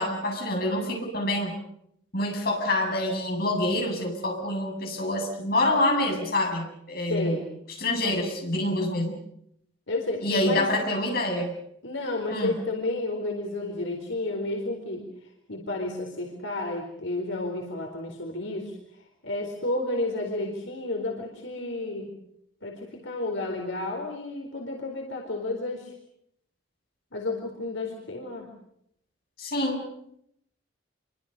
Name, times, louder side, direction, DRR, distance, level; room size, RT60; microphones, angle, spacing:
voice 1, 0.0-1.6 2.1-7.4 7.8-9.1 10.2-11.5 12.3-12.6 29.4-29.8, left 1 dB, 50° left, 1 dB, 7.9 m, -26 dB
voice 2, 7.1-7.5 9.9-10.7 11.8-15.0 15.5-22.1 22.6-25.9 27.1-28.5, left 2 dB, 75° left, 1 dB, 4.4 m, -31 dB
27.5 x 24.5 x 6.8 m, 0.74 s
head